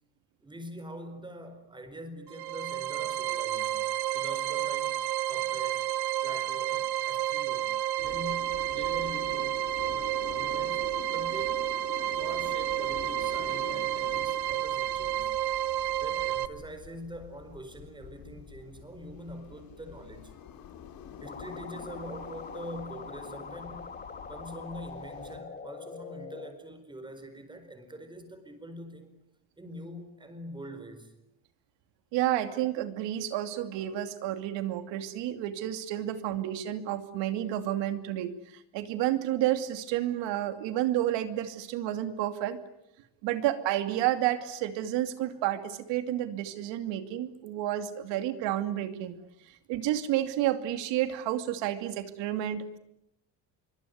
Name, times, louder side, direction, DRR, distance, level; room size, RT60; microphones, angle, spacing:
voice 1, 0.4-5.0 5.3-5.9 6.2-10.9 11.1-11.7 12.2-15.4 16.0-20.3 21.2-23.9 24.3-29.1 29.6-31.1, right 1 dB, 10° right, 4.6 m, -44 dB
sound 1, 2.3-16.5, right 13 dB, 60° right, 1.2 m, -30 dB
sound 2, 8.0-25.4, left 8 dB, 55° left, 3.4 m, -47 dB
sound 3, 21.3-26.5, left 5 dB, 20° left, 2.8 m, -43 dB
voice 2, 32.1-38.3 38.7-42.6 43.2-49.2 49.7-52.8, right 13 dB, 85° right, 2.7 m, -30 dB
25.5 x 24.0 x 9.5 m
cardioid pair, 155°, 42 cm